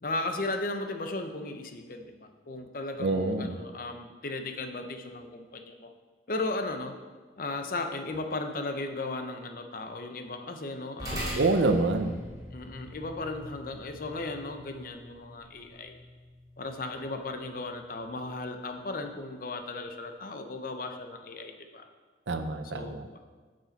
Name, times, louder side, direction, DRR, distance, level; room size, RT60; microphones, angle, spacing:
voice 1, 0.0-5.9 6.3-7.0 7.4-11.4 12.5-16.0 16.6-21.8 22.6-23.2, left 2 dB, 50° left, 6 dB, 0.7 m, -36 dB
voice 2, 3.0-3.6 11.4-12.2 22.3-23.0, right 2 dB, 80° right, 8 dB, 0.6 m, -26 dB
sound 1, 11.0-19.7, equal, 20° right, 2.4 m, -43 dB
8.5 x 6.4 x 4.1 m, 1.4 s
head